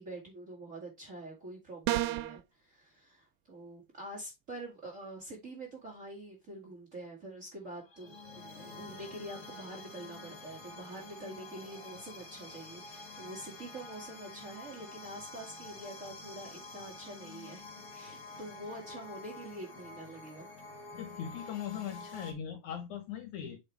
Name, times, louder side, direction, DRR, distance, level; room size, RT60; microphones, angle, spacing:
voice 1, 0.0-17.7 17.9-20.5, right 1 dB, 25° right, 1.9 m, -46 dB
sound 1, 1.9-2.4, right 15 dB, 85° right, 2.4 m, -30 dB
sound 2, 7.6-22.3, left 3 dB, 85° left, 0.7 m, -48 dB
voice 2, 20.9-23.6, left 9 dB, 70° left, 2.2 m, -40 dB
7.6 x 4.9 x 3.3 m
omnidirectional pair, 4.0 m